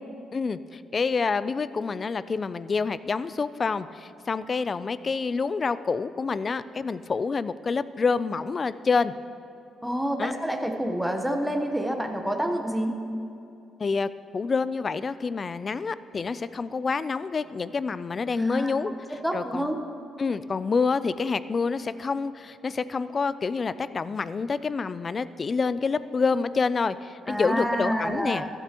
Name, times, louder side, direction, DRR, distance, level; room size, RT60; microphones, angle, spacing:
voice 1, 0.3-9.1 10.2-10.3 13.8-18.9 19.3-19.7 20.2-28.4, left 4 dB, 35° left, 15 dB, 0.3 m, -27 dB
voice 2, 9.8-12.9 18.4-19.8 27.3-28.5, equal, ahead, 4 dB, 1.0 m, -28 dB
14.0 x 11.5 x 2.9 m, 2.6 s
cardioid pair, 90°, 0 cm